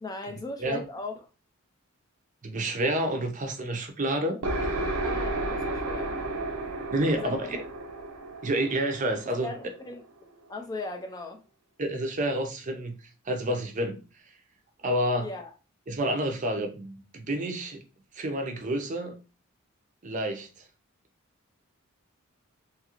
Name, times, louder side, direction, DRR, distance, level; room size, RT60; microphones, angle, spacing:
voice 1, 0.0-1.1 5.0-6.2 7.2-7.5 9.2-10.0 10.5-11.4 15.2-15.5, left 2 dB, 15° left, 0.3 m, -38 dB
voice 2, 2.4-4.9 6.9-7.6 8.4-9.5 11.8-12.9 13.3-14.0 14.8-15.3 15.9-17.8 18.1-19.1 20.0-20.5, right 1 dB, 35° right, 0.5 m, -29 dB
sound 1, 4.4-10.0, right 2 dB, 85° right, 0.6 m, -32 dB
2.9 x 2.4 x 2.9 m
head